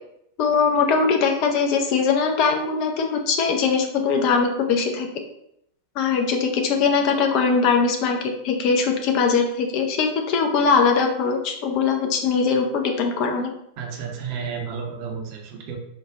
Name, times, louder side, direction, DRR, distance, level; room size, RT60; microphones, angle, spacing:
voice 1, 0.4-5.1 6.0-13.5, left 5 dB, 40° left, 3 dB, 0.6 m, -21 dB
voice 2, 13.8-15.8, right 6 dB, 45° right, 2 dB, 0.8 m, -32 dB
4.8 x 2.4 x 3.6 m, 0.77 s
figure-of-eight pair, 90°, 0 cm